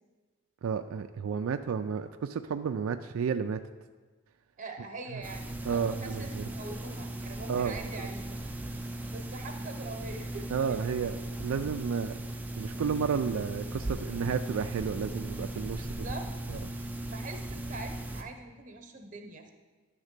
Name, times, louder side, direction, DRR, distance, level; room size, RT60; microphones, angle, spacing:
voice 1, 0.6-3.6 5.1-5.2 5.6-6.4 7.5-8.1 10.5-12.1 12.6-16.1 16.5-16.6, right 6 dB, 80° right, 7 dB, 0.4 m, -32 dB
voice 2, 4.6-8.4 9.1-10.8 15.8-16.3 17.0-19.5, right 2 dB, 40° right, 4 dB, 0.9 m, -43 dB
sound 1, 5.2-18.2, right 1 dB, 10° right, 0.5 m, -38 dB
11.0 x 3.6 x 6.6 m, 1.3 s
head